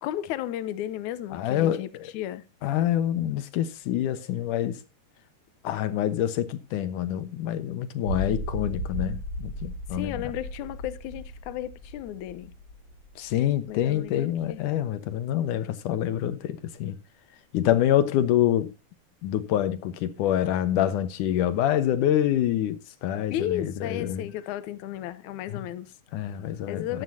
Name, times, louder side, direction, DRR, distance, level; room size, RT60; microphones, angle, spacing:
voice 1, 0.0-2.4 9.9-12.5 13.7-14.6 23.3-25.9 26.7-27.0, left 12 dB, 85° left, 1.7 m, -34 dB
voice 2, 1.3-1.8 2.6-4.8 5.6-10.2 13.2-17.0 17.5-18.7 19.2-24.3 25.5-25.7 26.1-26.8, left 11 dB, 70° left, 2.2 m, -26 dB
sound 1, 8.1-14.1, left 1 dB, 40° left, 3.4 m, -35 dB
14.0 x 11.5 x 2.8 m
omnidirectional pair, 4.6 m